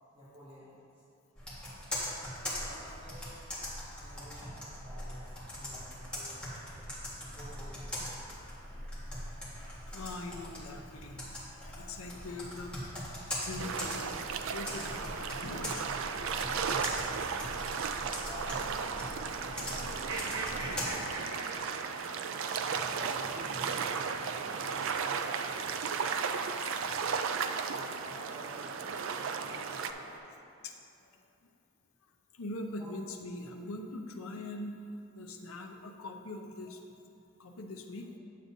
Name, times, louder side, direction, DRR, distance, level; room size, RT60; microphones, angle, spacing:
voice 1, 0.1-0.8 1.8-2.0 2.6-3.3 4.0-5.2 5.5-6.6 7.3-7.9 13.9-14.0 16.2-21.3 22.2-26.0 26.5-27.1 27.7-28.8 29.0-30.3 32.8-32.9, equal, 25° right, -12 dB, 1.5 m, -51 dB
Computer keyboard, 1.4-20.9, left 1 dB, 5° left, 1.6 m, -41 dB
voice 2, 9.1-11.3 11.5-14.2 14.5-16.0 21.8-21.9 30.6-30.8 32.3-34.8 35.1-36.8 37.4-38.1, left 2 dB, 80° left, 3 dB, 0.7 m, -42 dB
sound 1, 13.6-29.9, right 6 dB, 65° right, 0.3 m, -35 dB
sound 2, 14.7-30.2, right 2 dB, 90° right, 1.1 m, -46 dB
9.3 x 7.5 x 2.7 m, 2.7 s
head